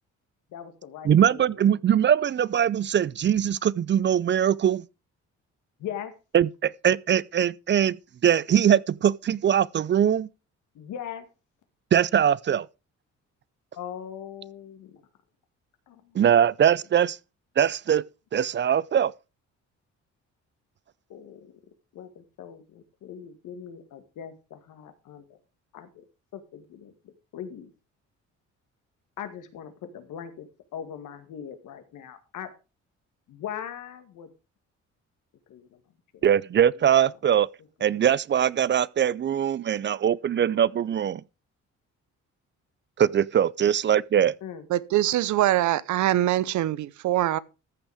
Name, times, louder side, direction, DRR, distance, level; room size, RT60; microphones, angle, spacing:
voice 1, 0.5-1.7 5.8-6.1 10.7-11.3 13.7-15.0 15.9-16.2 21.1-21.5 21.9-25.4 25.7-26.0 26.3-27.7 29.2-32.5 33.3-34.3 35.5-35.8 36.1-36.3 36.7-36.8 37.8-38.1 40.4-40.6 44.4-44.6, left 9 dB, 80° left, 2.0 m, -40 dB
voice 2, 1.0-4.8 6.3-8.0 8.2-10.3 11.9-12.7 16.1-17.2 17.6-18.0 18.3-19.1 36.2-37.5 37.8-41.2 43.0-44.3, right 9 dB, 40° right, 0.4 m, -22 dB
voice 3, 44.7-47.4, right 14 dB, 75° right, 0.8 m, -23 dB
14.0 x 6.1 x 4.9 m
cardioid pair, 90°, 30 cm